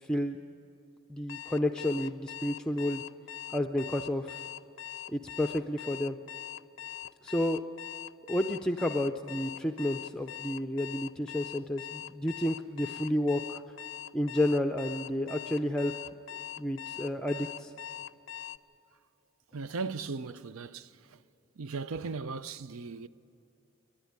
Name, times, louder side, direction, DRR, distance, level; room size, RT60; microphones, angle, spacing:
voice 1, 0.0-0.4 1.1-3.0 3.5-4.4 5.1-6.2 7.2-7.6 8.3-13.7 14.1-15.9 16.6-17.7, left 1 dB, 5° left, 0.5 m, -31 dB
Alarm, 1.3-18.6, left 11 dB, 60° left, 0.5 m, -42 dB
voice 2, 19.5-20.9 21.6-23.1, right 4 dB, 80° right, 0.6 m, -37 dB
29.5 x 11.5 x 9.6 m
head